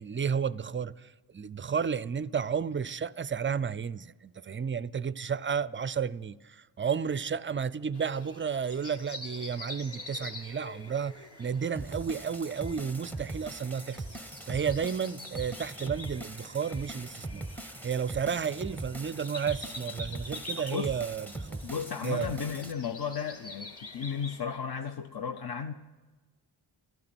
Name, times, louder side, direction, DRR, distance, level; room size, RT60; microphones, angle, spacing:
voice 1, 0.0-21.6 22.0-22.4, right 7 dB, 25° right, 0.4 m, -32 dB
sound 1, 7.9-24.4, left 2 dB, 30° left, 2.5 m, -46 dB
sound 2, 11.8-22.7, right 2 dB, 5° left, 0.8 m, -41 dB
voice 2, 21.6-25.7, left 7 dB, 50° left, 0.8 m, -34 dB
13.5 x 12.0 x 7.8 m
wide cardioid pair, 95°, 47 cm